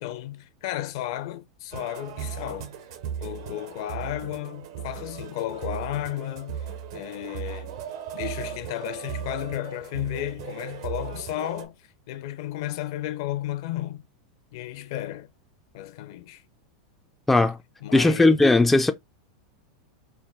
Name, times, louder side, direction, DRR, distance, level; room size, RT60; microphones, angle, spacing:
voice 1, 0.0-2.7 3.2-7.7 8.1-14.0 14.5-15.3 15.7-16.4 17.8-18.5, left 13 dB, 65° left, 0.6 m, -33 dB
sound 1, 1.7-11.6, right 8 dB, 70° right, 0.9 m, -37 dB
voice 2, 17.9-18.9, left 2 dB, 5° left, 0.3 m, -18 dB
4.6 x 2.2 x 3.5 m
supercardioid pair, 140°, 3 cm